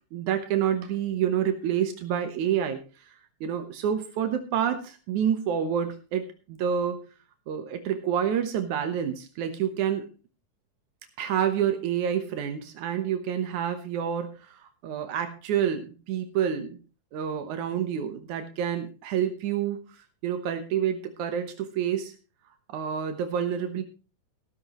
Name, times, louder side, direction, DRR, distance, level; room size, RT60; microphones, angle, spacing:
voice 1, 0.1-3.1 3.4-7.0 7.5-10.0 11.2-16.8 17.1-22.1 22.7-23.8, right 9 dB, 85° right, 7 dB, 2.6 m, -28 dB
15.0 x 13.5 x 3.0 m, 0.33 s
omnidirectional pair, 3.3 m